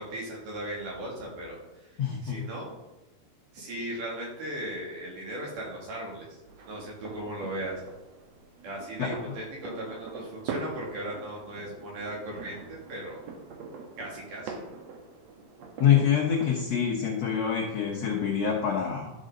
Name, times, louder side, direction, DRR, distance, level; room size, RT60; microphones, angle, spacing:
voice 1, 0.0-2.7 3.5-6.4 6.7-7.8 8.6-13.2 14.0-14.6, right 1 dB, 55° right, -3 dB, 3.8 m, -37 dB
voice 2, 2.0-2.4 9.0-9.1 15.8-19.1, left 8 dB, 70° left, -2 dB, 1.6 m, -25 dB
sound 1, 6.5-16.6, right 4 dB, 80° right, 1.5 m, -42 dB
12.0 x 6.6 x 3.8 m, 1.0 s
omnidirectional pair, 4.6 m